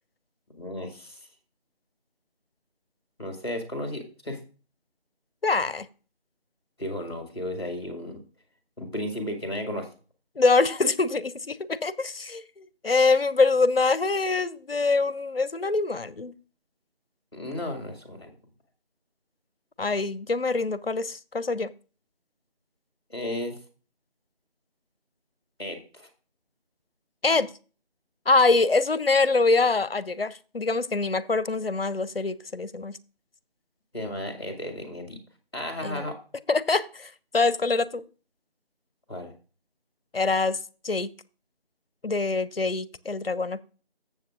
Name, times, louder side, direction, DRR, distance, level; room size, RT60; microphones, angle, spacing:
voice 1, 0.6-1.2 3.2-4.4 6.8-8.2 8.8-9.9 17.3-18.3 23.1-23.5 25.6-26.1 33.9-35.2 35.5-36.1 39.1-39.3, left 1 dB, 25° left, 1.7 m, -34 dB
voice 2, 5.4-5.9 10.4-16.3 19.8-21.7 27.2-27.5 28.3-33.0 35.8-36.1 36.5-38.0 40.1-40.6 40.8-41.1 42.0-43.6, left 3 dB, 65° left, 0.6 m, -24 dB
13.5 x 7.5 x 2.5 m
figure-of-eight pair, 175°, 32 cm